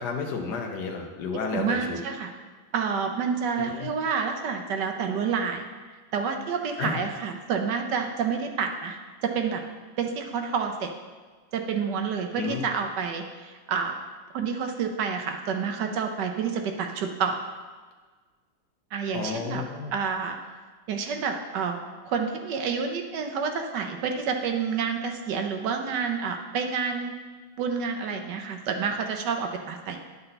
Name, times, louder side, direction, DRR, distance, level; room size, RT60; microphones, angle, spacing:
voice 1, 0.0-2.0 3.6-3.9 6.8-7.0 12.4-12.7 19.1-19.9, left 5 dB, 60° left, 2 dB, 1.4 m, -31 dB
voice 2, 1.5-2.3 2.7-5.6 6.1-9.6 10.0-10.9 11.5-14.0 14.3-17.4 18.9-19.6 19.9-20.4 20.9-21.8 22.0-27.1 27.6-30.0, right 6 dB, 70° right, 4 dB, 1.1 m, -29 dB
10.5 x 5.6 x 4.0 m, 1.4 s
omnidirectional pair, 2.3 m